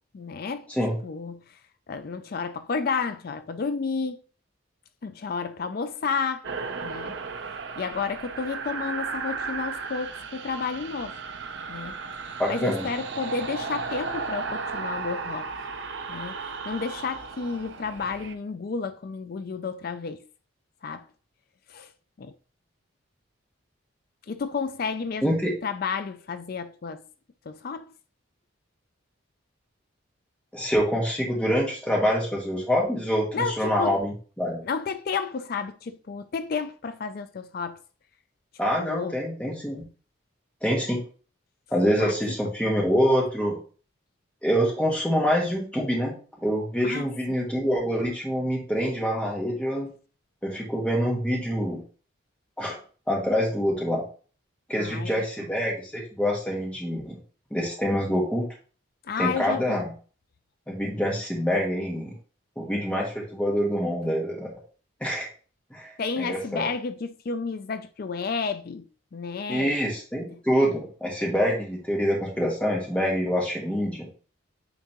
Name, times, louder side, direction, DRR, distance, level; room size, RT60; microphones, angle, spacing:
voice 1, 0.1-0.7 1.0-1.4 1.9-4.2 5.0-6.4 6.8-7.2 7.8-11.2 11.7-12.0 12.5-15.5 16.1-20.2 20.8-21.0 21.7-21.9 22.2-22.3 24.3-25.3 25.6-27.0 27.5-27.9 33.3-34.0 34.6-37.8 38.8-39.1 42.0-42.1 46.8-47.1 54.7-55.3 59.0-59.8 66.0-68.8 69.1-69.8, left 5 dB, 45° left, 0.4 m, -31 dB
sound 1, 6.4-18.3, right 4 dB, 55° right, 0.6 m, -35 dB
voice 2, 12.4-12.8 25.2-25.5 30.5-34.6 38.6-39.8 40.6-41.0 41.7-43.6 44.4-46.1 46.4-49.9 50.4-51.8 52.6-52.8 53.1-54.0 54.7-57.1 57.5-58.4 59.2-59.9 60.7-62.1 62.6-64.5 65.0-65.3 65.7-66.7 69.5-74.1, equal, 5° left, 1.5 m, -26 dB
8.9 x 3.7 x 3.0 m
head